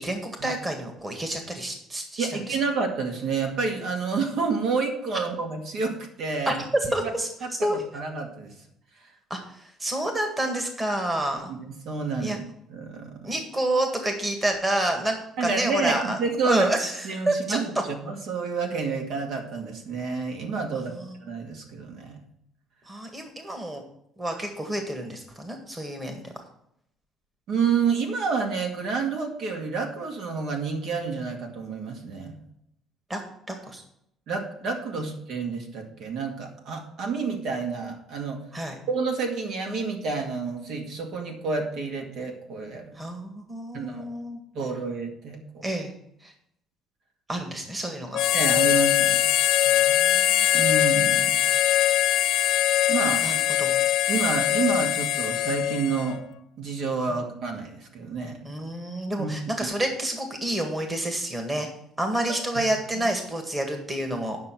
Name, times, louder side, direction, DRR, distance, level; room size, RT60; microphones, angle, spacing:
voice 1, 0.0-2.6 6.5-7.3 7.6-7.8 9.3-11.5 12.2-12.4 13.2-16.2 16.4-17.6 21.0-21.1 22.9-23.8 24.2-26.3 33.1-33.2 33.5-33.8 38.5-38.8 43.0-44.4 45.6-45.9 46.2-46.3 47.3-48.3 49.7-50.4 53.2-53.8 57.1-57.2 58.4-61.7 62.0-64.4, right 1 dB, 15° right, 4 dB, 1.7 m, -29 dB
voice 2, 2.2-6.6 7.4-8.5 11.5-12.4 12.7-13.2 15.4-16.7 17.0-20.9 21.2-22.2 27.5-32.3 34.3-38.4 38.9-42.9 43.7-44.1 44.5-45.7 48.3-49.6 50.5-51.4 52.9-53.3 54.1-56.2 56.6-58.4 59.2-59.3 62.9-63.1, right 4 dB, 65° right, 2 dB, 2.3 m, -29 dB
Harmonica, 48.1-56.2, left 13 dB, 75° left, 0.7 m, -22 dB
9.5 x 6.2 x 6.1 m, 0.75 s
cardioid pair, 135°, 0 cm